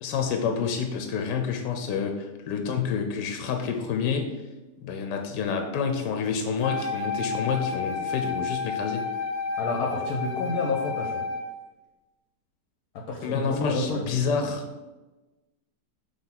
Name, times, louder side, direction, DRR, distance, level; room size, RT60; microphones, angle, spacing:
voice 1, 0.0-4.4 4.8-9.1 13.2-14.6, left 6 dB, 90° left, 4 dB, 1.3 m, -28 dB
Wind instrument woodwind instrument, 6.6-11.5, left 4 dB, 25° right, 1.3 m, -31 dB
voice 2, 9.6-11.1 13.1-14.0, left 3 dB, 65° left, 0 dB, 1.2 m, -29 dB
5.7 x 3.6 x 5.8 m, 1.1 s
omnidirectional pair, 1.8 m